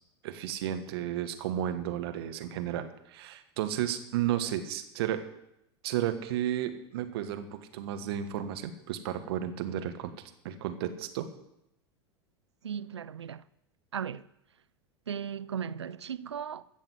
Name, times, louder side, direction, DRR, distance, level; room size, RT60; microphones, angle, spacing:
voice 1, 0.2-5.2 5.8-10.1 10.4-11.3, right 11 dB, 65° right, 1.5 m, -33 dB
voice 2, 12.6-13.4 13.9-14.3 15.1-16.6, right 8 dB, 90° right, 0.4 m, -36 dB
15.0 x 6.5 x 8.0 m
hypercardioid pair, 90°, 14 cm